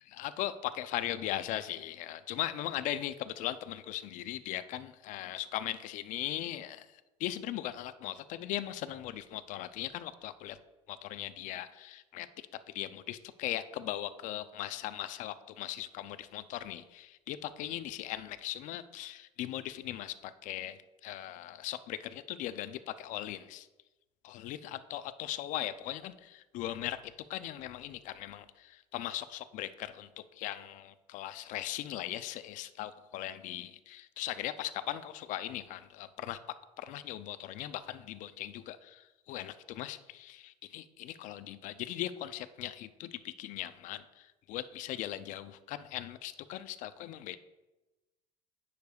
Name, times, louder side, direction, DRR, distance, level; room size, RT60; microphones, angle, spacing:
voice 1, 0.2-10.6 10.9-12.3 12.7-23.7 24.2-27.0 27.3-36.4 36.8-47.4, left 13 dB, 65° left, 12 dB, 0.4 m, -39 dB
9.4 x 6.5 x 2.4 m, 1.1 s
supercardioid pair, 105°, 14 cm